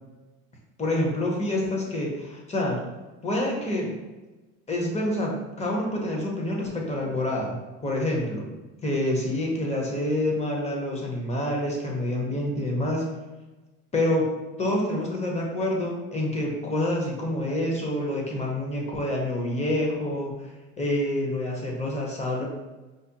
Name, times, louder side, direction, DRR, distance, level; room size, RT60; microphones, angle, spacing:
voice 1, 0.8-2.8 3.2-4.0 4.7-8.5 8.8-13.1 13.9-14.3 14.6-20.3 20.8-22.4, left 1 dB, 20° left, -1 dB, 0.8 m, -27 dB
4.9 x 2.1 x 2.8 m, 1.1 s
cardioid pair, 125°, 35 cm